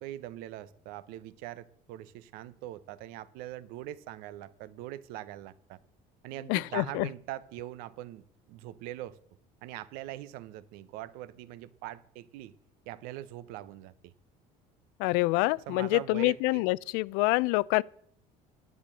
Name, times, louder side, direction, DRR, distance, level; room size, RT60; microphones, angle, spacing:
voice 1, 0.0-5.8 6.2-9.2 9.6-12.5 12.9-14.1 15.7-16.6, right 14 dB, 75° right, 0.9 m, -42 dB
voice 2, 6.5-7.1 15.0-17.8, left 22 dB, 85° left, 0.5 m, -26 dB
11.0 x 8.6 x 7.5 m
cardioid pair, 150°, 15 cm